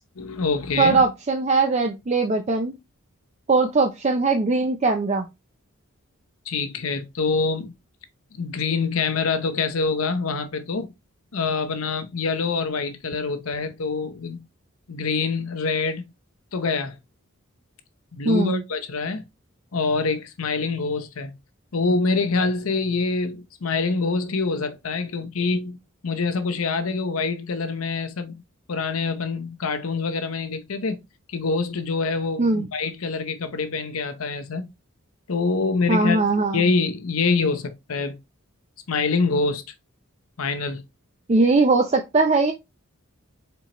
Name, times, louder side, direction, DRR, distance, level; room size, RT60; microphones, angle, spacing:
voice 1, 0.2-1.0 6.5-7.7 8.3-10.9 11.3-14.4 14.9-16.0 16.5-17.0 18.1-19.2 19.7-21.3 21.7-25.8 26.0-28.4 28.7-31.0 31.3-34.7 35.3-36.2 36.5-38.2 38.9-39.6 40.4-40.8, left 4 dB, 85° left, 0.7 m, -25 dB
voice 2, 0.8-2.7 3.5-5.3 18.3-18.6 32.4-32.7 35.9-36.7 41.3-42.5, right 3 dB, 30° right, 0.4 m, -20 dB
4.5 x 3.9 x 2.9 m
head